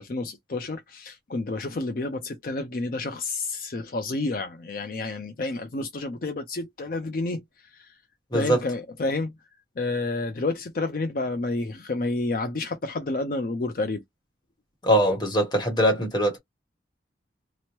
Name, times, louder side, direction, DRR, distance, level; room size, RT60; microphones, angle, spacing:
voice 1, 0.0-8.0 8.3-9.3 9.8-14.0, left 2 dB, 50° left, 0.5 m, -30 dB
voice 2, 14.8-16.4, equal, 25° left, 1.0 m, -22 dB
2.9 x 2.0 x 2.9 m
head